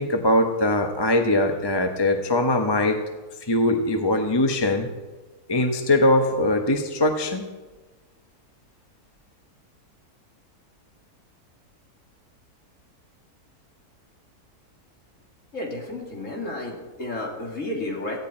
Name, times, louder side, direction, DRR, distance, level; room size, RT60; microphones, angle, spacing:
voice 1, 0.0-3.0 3.5-4.9 5.5-7.5, left 1 dB, 20° left, 4 dB, 1.0 m, -21 dB
voice 2, 15.5-18.2, left 2 dB, 50° left, -1 dB, 3.3 m, -32 dB
17.5 x 15.0 x 4.5 m, 1.2 s
omnidirectional pair, 1.7 m